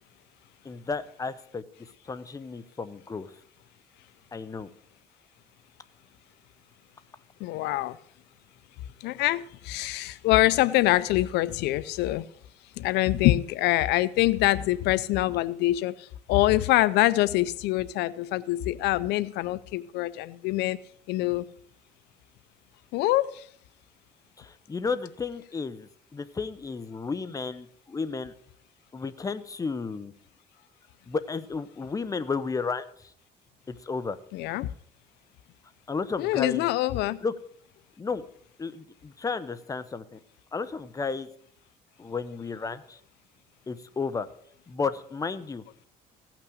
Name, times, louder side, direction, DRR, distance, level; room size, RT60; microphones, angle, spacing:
voice 1, 0.6-1.6 2.1-3.3 4.3-4.7 24.4-28.3 28.9-30.1 31.1-32.8 33.7-34.2 35.9-36.6 37.2-37.3 38.0-38.2 38.6-40.2 40.5-41.3 42.0-43.0 43.7-44.3 44.7-45.6, left 4 dB, 20° left, 0.8 m, -32 dB
voice 2, 7.4-8.0 9.0-12.3 12.8-20.8 21.1-21.5 22.9-23.4 34.3-34.7 36.2-37.2, left 16 dB, 85° left, 0.5 m, -25 dB
16.0 x 6.0 x 6.3 m
cardioid pair, 110°, 17 cm